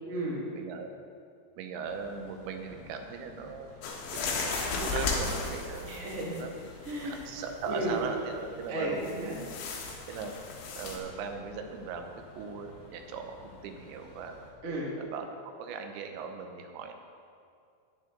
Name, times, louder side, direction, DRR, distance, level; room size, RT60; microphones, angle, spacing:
voice 1, 0.0-0.4 5.8-6.4 6.8-7.2 7.7-8.0 8.7-9.4 14.6-14.9, right 1 dB, 35° right, -4 dB, 1.2 m, -34 dB
voice 2, 0.6-0.9 1.6-3.9 4.1-4.3 4.8-6.0 6.4-6.5 7.0-9.5 10.1-10.3 10.7-14.3 15.0-16.9, right 5 dB, 85° right, 5 dB, 3.2 m, -39 dB
sound 1, 1.8-14.5, left 2 dB, 60° left, 3.6 m, -53 dB
sound 2, 3.8-6.5 6.9-7.5 9.0-11.0, left 4 dB, 85° left, 3.8 m, -35 dB
14.0 x 11.0 x 3.9 m, 2.4 s
omnidirectional pair, 5.1 m